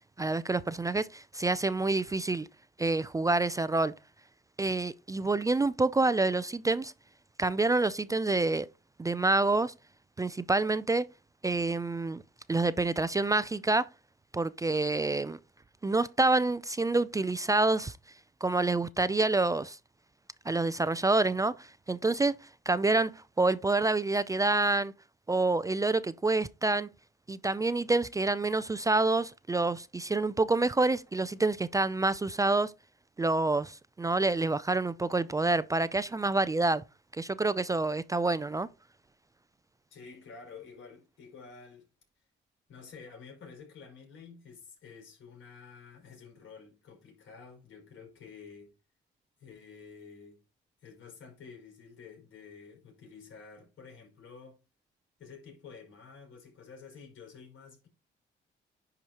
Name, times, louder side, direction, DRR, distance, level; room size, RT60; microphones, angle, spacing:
voice 1, 0.2-2.5 2.8-3.9 4.6-6.9 7.4-8.7 9.0-9.7 10.2-11.1 11.4-12.2 12.5-13.9 14.3-15.4 15.8-18.0 18.4-19.8 20.5-24.9 25.3-26.9 27.3-32.7 33.2-36.8 37.1-38.7, right 3 dB, 15° right, 0.4 m, -27 dB
voice 2, 39.9-41.9 42.7-48.7 49.4-50.4 50.8-54.6 55.2-57.9, left 5 dB, 80° left, 5.2 m, -50 dB
10.5 x 4.9 x 2.9 m
cardioid pair, 90°, 20 cm